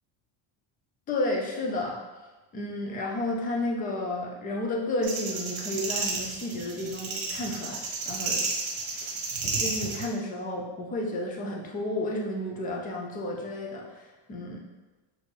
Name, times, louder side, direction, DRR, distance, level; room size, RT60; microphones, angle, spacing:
voice 1, 1.1-2.0 2.5-7.8 8.1-8.4 9.6-14.6, left 1 dB, 20° left, 0 dB, 0.3 m, -31 dB
sound 1, 5.0-10.1, right 3 dB, 55° right, 1.1 m, -31 dB
6.2 x 2.6 x 3.2 m, 1.2 s
cardioid pair, 175°, 45 cm